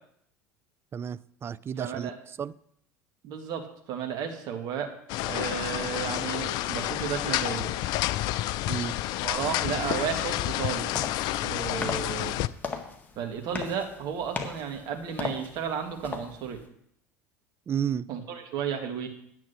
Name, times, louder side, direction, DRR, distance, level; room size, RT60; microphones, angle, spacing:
voice 1, 0.9-2.1 2.4-2.5 8.7-8.9 17.7-18.1, right 8 dB, 30° right, 0.4 m, -32 dB
voice 2, 1.8-2.1 3.2-4.9 5.2-7.7 9.2-10.9 11.4-12.4 13.2-16.6 18.1-19.1, right 8 dB, 50° right, 1.9 m, -33 dB
sound 1, 5.1-12.5, left 15 dB, 50° left, 0.4 m, -29 dB
sound 2, 10.6-16.7, left 4 dB, 20° left, 1.7 m, -38 dB
10.0 x 7.3 x 6.0 m
figure-of-eight pair, 70°, 9 cm